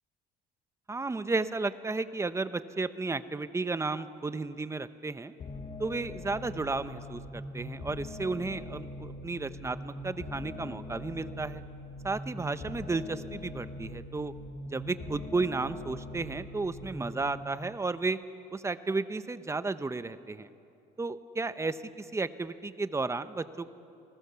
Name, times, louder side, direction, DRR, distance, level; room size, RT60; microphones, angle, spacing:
voice 1, 0.9-5.3 5.8-11.6 12.0-14.3 14.7-18.2 18.5-20.5 21.0-23.7, right 3 dB, 15° right, 12 dB, 0.9 m, -33 dB
sound 1, 5.4-17.4, left 2 dB, 45° left, 4.1 m, -42 dB
29.0 x 20.0 x 7.0 m, 2.6 s
cardioid pair, 110°, 17 cm